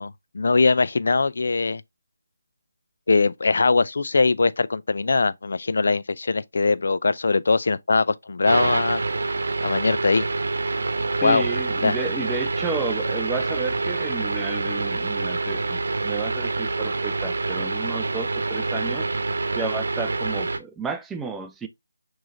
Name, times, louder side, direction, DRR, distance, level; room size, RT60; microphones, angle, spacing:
voice 1, 0.0-1.8 3.1-9.0 9.6-10.3 11.2-11.4 11.8-12.0, left 3 dB, 60° left, 0.4 m, -21 dB
sound 1, 8.5-20.6, right 3 dB, 60° right, 0.9 m, -26 dB
voice 2, 11.2-19.1 19.6-21.7, right 4 dB, 5° right, 0.4 m, -32 dB
6.0 x 3.1 x 2.5 m
figure-of-eight pair, 160°, 0 cm